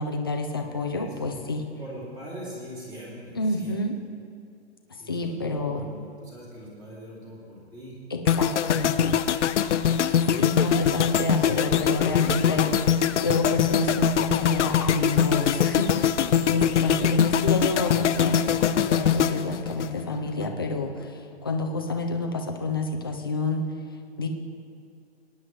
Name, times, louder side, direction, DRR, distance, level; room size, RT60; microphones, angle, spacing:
voice 1, 0.0-1.6 3.4-4.0 4.9-5.9 8.1-9.1 10.4-23.7 24.2-24.3, left 2 dB, 20° left, 3 dB, 0.3 m, -28 dB
voice 2, 0.7-1.4 1.8-3.8 5.0-8.0 9.5-10.0, right 1 dB, 10° right, -6 dB, 2.4 m, -43 dB
sound 1, 8.3-20.5 20.7-21.0, left 9 dB, 90° left, 0.6 m, -23 dB
18.0 x 9.6 x 3.1 m, 2.4 s
hypercardioid pair, 165°, 34 cm